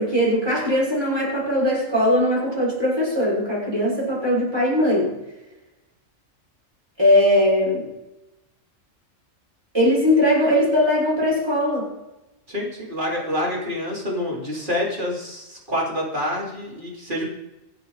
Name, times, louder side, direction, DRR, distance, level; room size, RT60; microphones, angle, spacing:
voice 1, 0.0-5.1 7.0-7.8 9.7-11.9, left 1 dB, 20° right, -5 dB, 6.1 m, -20 dB
voice 2, 12.5-17.3, left 1 dB, 40° right, -4 dB, 4.1 m, -27 dB
26.0 x 8.9 x 4.2 m, 0.98 s
omnidirectional pair, 1.4 m